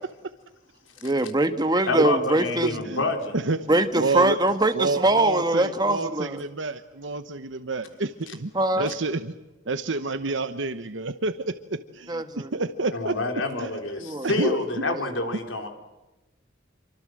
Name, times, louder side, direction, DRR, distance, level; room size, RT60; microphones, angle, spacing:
voice 1, 1.0-2.8 3.7-6.4 8.5-8.9 12.1-12.5 14.0-14.6 14.9-15.0, right 2 dB, 20° right, 1.6 m, -23 dB
voice 2, 1.9-3.4 8.3-8.4 12.9-15.7, left 2 dB, 85° left, 3.8 m, -28 dB
voice 3, 4.0-4.4 4.7-8.5 8.8-9.3 9.7-13.1 13.6-13.7 14.2-14.5, right 3 dB, 75° right, 1.0 m, -29 dB
27.5 x 25.0 x 7.7 m
head